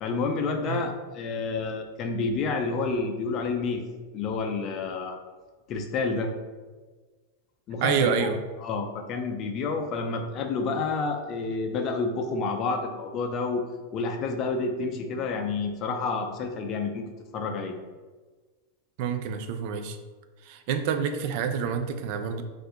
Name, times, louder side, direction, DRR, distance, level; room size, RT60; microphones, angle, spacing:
voice 1, 0.0-3.8 4.1-5.2 5.7-6.3 7.7-8.1 8.6-13.6 13.9-17.0 17.3-17.7, left 4 dB, 35° left, 5 dB, 0.4 m, -29 dB
voice 2, 7.8-8.4 19.0-20.0 20.4-22.4, right 7 dB, 55° right, 7 dB, 0.3 m, -27 dB
2.6 x 2.4 x 3.7 m, 1.3 s
supercardioid pair, 140°, 0 cm